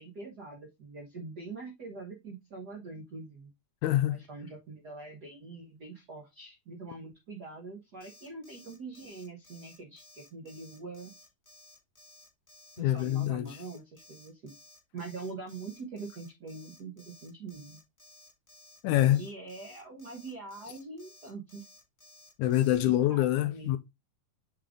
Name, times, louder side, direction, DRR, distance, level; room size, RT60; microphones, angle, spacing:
voice 1, 0.0-3.5 4.1-11.1 12.8-14.5 14.9-17.8 18.9-21.7 23.1-23.8, right 3 dB, 85° right, 0.8 m, -44 dB
voice 2, 3.8-4.2 12.8-13.6 18.8-19.2 22.4-23.8, left 13 dB, 80° left, 1.7 m, -25 dB
Alarm, 8.0-22.8, left 2 dB, 25° left, 0.3 m, -56 dB
7.4 x 3.7 x 3.4 m
omnidirectional pair, 3.7 m